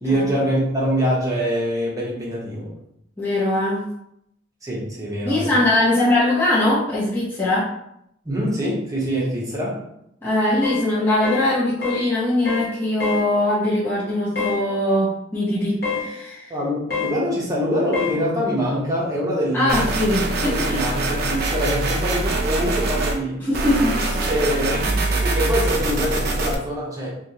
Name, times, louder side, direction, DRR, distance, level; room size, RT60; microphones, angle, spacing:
voice 1, 0.0-2.7 4.6-5.6 8.2-9.8 16.5-19.9 20.4-23.4 24.3-27.1, equal, 15° right, -5 dB, 0.9 m, -24 dB
voice 2, 3.2-3.8 5.2-7.7 10.2-16.5 19.5-20.8 23.4-24.3, left 1 dB, 10° left, -11 dB, 0.8 m, -21 dB
sound 1, 10.6-10.9 11.2-11.5 11.8-12.1 12.5-12.7 13.0-13.3 14.4-14.6 15.8-16.1 16.9-17.2 17.9-18.2, left 5 dB, 55° left, 1.0 m, -26 dB
sound 2, 19.7-23.2 23.5-26.5, right 2 dB, 50° right, 0.5 m, -23 dB
3.2 x 2.9 x 2.8 m, 0.77 s
head